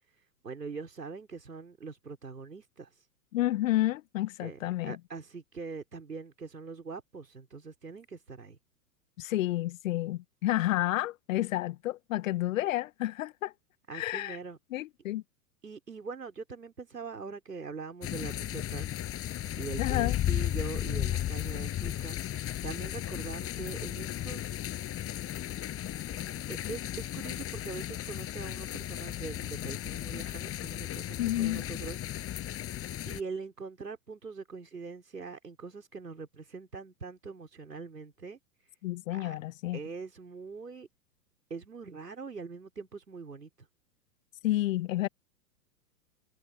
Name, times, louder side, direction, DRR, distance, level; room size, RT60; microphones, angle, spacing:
voice 1, 0.4-2.9 4.4-8.6 13.9-14.6 15.6-18.9 19.5-22.2 22.6-24.6 26.5-32.0 33.1-38.4 39.1-39.3 39.7-40.9 41.5-43.5, right 4 dB, 90° right, 4.6 m, -42 dB
voice 2, 3.3-5.0 9.2-13.5 13.9-14.4 14.7-15.2 19.8-20.2 31.2-31.6 38.8-39.8 44.4-45.1, left 15 dB, 55° left, 1.2 m, -30 dB
sound 1, 18.0-33.2, left 12 dB, 30° left, 6.8 m, -35 dB
hypercardioid pair, 105°, 47 cm